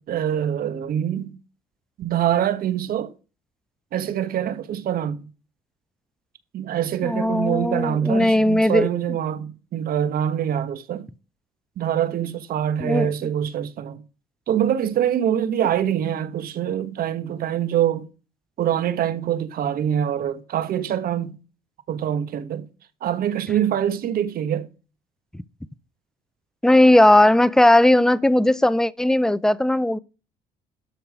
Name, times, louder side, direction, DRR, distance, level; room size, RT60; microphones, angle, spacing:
voice 1, 0.0-1.4 2.0-3.1 3.9-5.2 6.5-11.1 11.8-14.0 14.5-18.1 18.6-21.4 21.9-22.7 23.0-24.7, right 10 dB, 60° right, 1.4 m, -24 dB
voice 2, 7.0-8.9 12.8-13.1 26.6-30.0, left 1 dB, 5° left, 0.5 m, -17 dB
13.0 x 5.7 x 4.9 m
cardioid pair, 110°, 17 cm